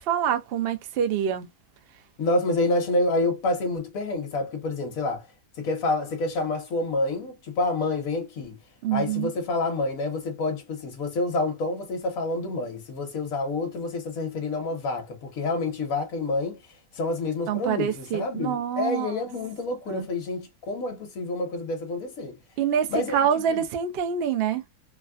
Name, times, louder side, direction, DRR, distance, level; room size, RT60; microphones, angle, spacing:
voice 1, 0.0-1.5 8.8-9.3 17.5-19.1 19.9-20.1 22.6-24.6, right 8 dB, 75° right, 0.5 m, -26 dB
voice 2, 2.2-5.2 5.6-8.6 8.9-16.6 16.9-22.4 22.9-23.6, left 2 dB, 60° left, 1.4 m, -28 dB
3.3 x 2.2 x 2.4 m
omnidirectional pair, 1.7 m